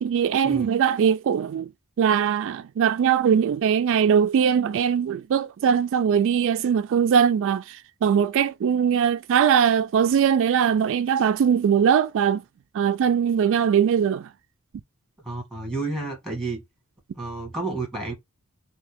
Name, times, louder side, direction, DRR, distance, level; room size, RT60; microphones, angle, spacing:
voice 1, 0.0-1.7 2.0-12.4 12.7-14.3, right 7 dB, 60° right, 0.3 m, -21 dB
voice 2, 15.2-16.6 17.2-18.1, right 3 dB, ahead, 2.0 m, -30 dB
3.5 x 2.8 x 3.4 m
head